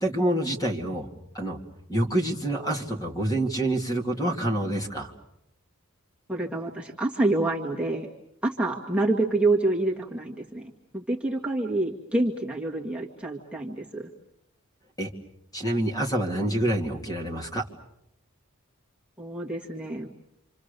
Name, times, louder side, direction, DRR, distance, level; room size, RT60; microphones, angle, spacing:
voice 1, 0.0-1.1 1.3-1.6 1.9-5.1 15.0-15.1 15.5-17.6, right 1 dB, 15° left, 3 dB, 2.4 m, -27 dB
voice 2, 6.3-8.1 8.4-14.1 19.2-20.1, right 2 dB, 5° right, -2 dB, 1.7 m, -27 dB
28.0 x 27.0 x 6.8 m, 0.82 s
head